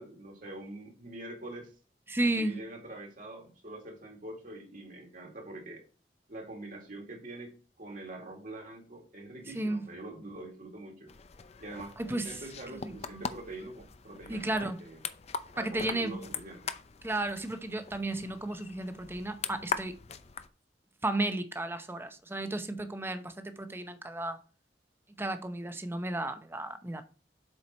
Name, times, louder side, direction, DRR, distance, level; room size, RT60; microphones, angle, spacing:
voice 1, 0.0-1.7 2.2-5.8 6.3-11.1 11.6-15.0 15.5-16.7, right 2 dB, 50° right, 2.0 m, -44 dB
voice 2, 2.1-2.6 9.5-9.8 12.0-12.4 12.8-13.2 14.3-14.8 15.6-16.1 17.0-19.9 21.0-24.4 25.2-27.0, right 2 dB, 15° right, 0.7 m, -33 dB
sound 1, 11.1-20.5, left 6 dB, 35° left, 0.5 m, -41 dB
7.7 x 4.7 x 4.2 m
head